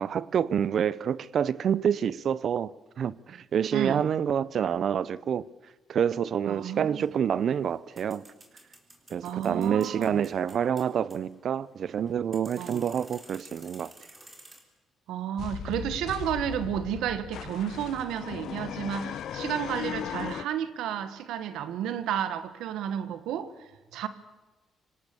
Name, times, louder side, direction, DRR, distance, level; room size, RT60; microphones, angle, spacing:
voice 1, 0.0-2.7 3.0-5.5 5.9-8.2 9.1-13.9, right 8 dB, 60° right, 0.7 m, -27 dB
voice 2, 3.7-4.1 6.5-7.0 9.2-10.2 12.6-12.8 15.1-24.1, right 9 dB, 85° right, 1.3 m, -32 dB
sound 1, 6.5-14.6, right 2 dB, 20° right, 4.3 m, -53 dB
sound 2, 15.4-20.4, left 10 dB, 70° left, 0.6 m, -37 dB
25.5 x 17.5 x 6.9 m
cardioid pair, 90°, 0 cm